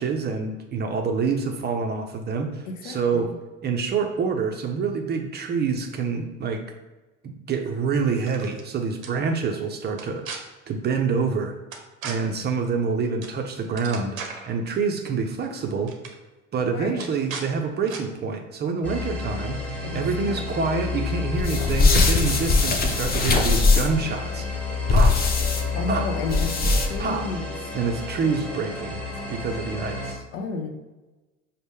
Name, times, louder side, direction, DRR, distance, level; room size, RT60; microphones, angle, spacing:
voice 1, 0.0-3.3 3.6-6.6 7.5-10.3 10.7-11.5 12.0-14.1 14.5-15.9 16.5-19.6 19.9-24.4 24.9-25.2 25.9-26.1 27.0-27.3 27.7-29.0 29.3-30.2, right 5 dB, 25° right, 3 dB, 0.5 m, -26 dB
voice 2, 2.6-3.4 16.7-17.0 19.8-20.4 25.7-27.5 30.3-30.7, left 4 dB, 70° left, 4 dB, 0.7 m, -32 dB
sound 1, 8.2-8.6 9.0-9.1 9.9-10.4 11.7-12.2 13.2-13.4 13.6-14.5 15.4-15.6 15.9-16.1 17.0-17.5 17.9-18.0, right 5 dB, 90° right, 0.6 m, -36 dB
sound 2, 18.8-30.1, left 4 dB, 5° left, 1.0 m, -31 dB
sound 3, 21.4-24.0 24.9-25.6 26.3-27.1, left 3 dB, 25° left, 0.5 m, -20 dB
5.1 x 2.1 x 3.4 m, 1.1 s
hypercardioid pair, 70°, 40 cm